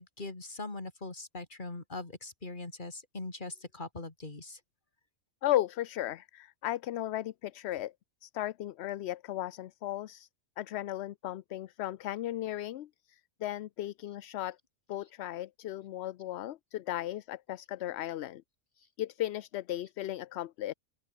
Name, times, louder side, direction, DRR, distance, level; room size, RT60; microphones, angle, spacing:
voice 1, 0.0-4.6, left 2 dB, 40° left, 3.0 m, -41 dB
voice 2, 5.4-7.9 8.2-10.3 10.6-14.6 14.9-18.4 18.8-20.7, left 13 dB, 65° left, 0.8 m, -36 dB
open air
omnidirectional pair, 1.3 m